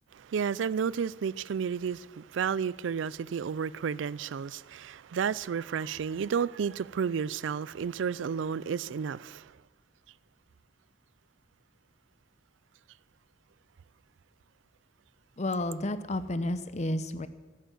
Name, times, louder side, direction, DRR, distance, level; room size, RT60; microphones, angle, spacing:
voice 1, 0.1-9.5, right 6 dB, 90° right, 0.4 m, -32 dB
voice 2, 15.4-17.3, left 1 dB, 40° left, 0.8 m, -31 dB
14.5 x 10.5 x 7.6 m
head